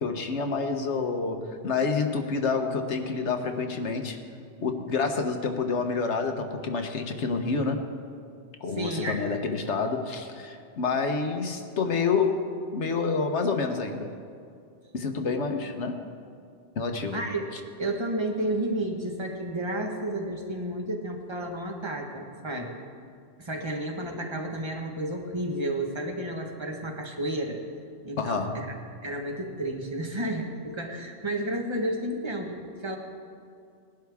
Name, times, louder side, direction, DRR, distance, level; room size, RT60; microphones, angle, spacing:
voice 1, 0.0-4.2 4.6-7.8 8.6-12.4 12.7-14.1 14.9-16.0 16.8-17.2 28.2-28.8, left 4 dB, 65° left, 5 dB, 1.3 m, -28 dB
voice 2, 8.8-9.2 17.1-17.5 17.8-22.8 23.4-27.6 28.0-28.7 29.0-33.0, right 1 dB, 20° right, 2 dB, 1.4 m, -31 dB
19.5 x 11.5 x 3.5 m, 2.4 s
omnidirectional pair, 1.3 m